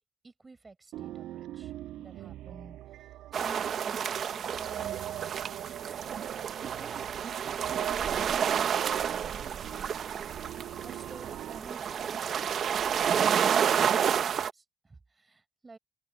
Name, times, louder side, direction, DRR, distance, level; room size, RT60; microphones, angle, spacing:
voice 1, 0.2-1.7 2.0-2.8 3.3-5.6 6.3-6.5 6.8-9.8 10.8-12.6 12.8-15.8, right 3 dB, 25° right, 6.8 m, -51 dB
sound 1, 0.9-11.6, right 14 dB, 85° right, 7.1 m, -42 dB
sound 2, 3.3-14.5, right 8 dB, 60° right, 1.3 m, -30 dB
open air
cardioid pair, 90°, 0 cm